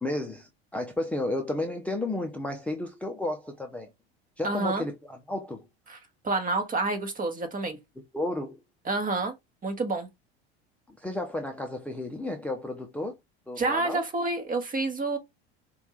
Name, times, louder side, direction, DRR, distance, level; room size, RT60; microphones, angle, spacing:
voice 1, 0.0-3.9 4.4-5.6 8.1-8.6 10.9-13.2 13.5-14.0, left 1 dB, 5° left, 0.7 m, -32 dB
voice 2, 4.4-4.8 5.9-6.0 6.2-7.8 8.8-9.3 9.6-10.1 13.6-15.2, right 3 dB, 25° right, 1.4 m, -28 dB
5.1 x 2.5 x 3.1 m
hypercardioid pair, 90°, 32 cm